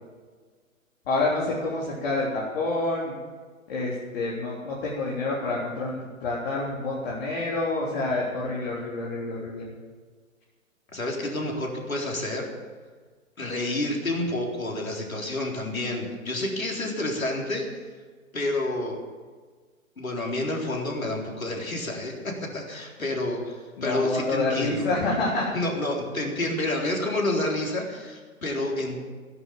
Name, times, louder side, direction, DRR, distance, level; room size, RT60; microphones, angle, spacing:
voice 1, 1.1-3.1 3.7-9.7 23.8-25.5, left 2 dB, 45° left, -5 dB, 3.7 m, -28 dB
voice 2, 10.9-12.5 13.4-17.7 18.3-19.0 20.0-24.9 25.5-29.0, left 1 dB, 75° left, 0 dB, 3.8 m, -29 dB
18.0 x 11.0 x 7.4 m, 1.5 s
figure-of-eight pair, 125°, 41 cm